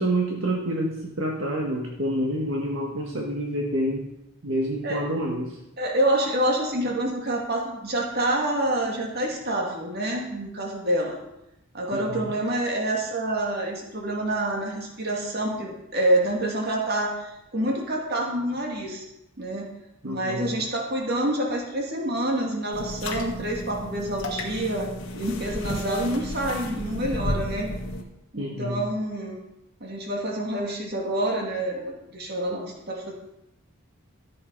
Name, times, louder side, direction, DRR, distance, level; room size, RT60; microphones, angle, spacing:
voice 1, 0.0-4.0 4.4-5.6 11.9-12.3 20.0-20.5 28.4-28.8, right 1 dB, 60° right, -1 dB, 1.6 m, -28 dB
voice 2, 5.8-11.2 11.7-19.1 19.4-19.7 20.0-24.9 25.1-27.7 28.3-29.4 29.8-33.1, right 1 dB, 45° right, 0 dB, 2.3 m, -27 dB
sound 1, 22.7-28.0, left 1 dB, 60° left, 2.0 m, -32 dB
13.5 x 7.7 x 5.4 m, 0.87 s
head